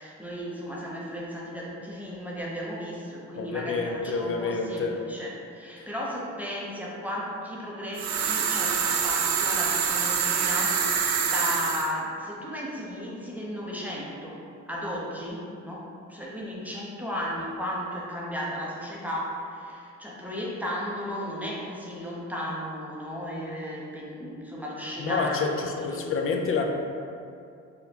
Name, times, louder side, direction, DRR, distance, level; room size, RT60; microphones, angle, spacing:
voice 1, 0.0-26.0, equal, 5° right, -5 dB, 0.5 m, -35 dB
voice 2, 3.4-5.0 5.8-5.9 25.0-26.6, left 4 dB, 45° left, 3 dB, 0.4 m, -28 dB
sound 1, 8.0-11.9, right 6 dB, 70° right, 0.4 m, -25 dB
4.2 x 2.1 x 2.7 m, 2.5 s
cardioid pair, 90°, 30 cm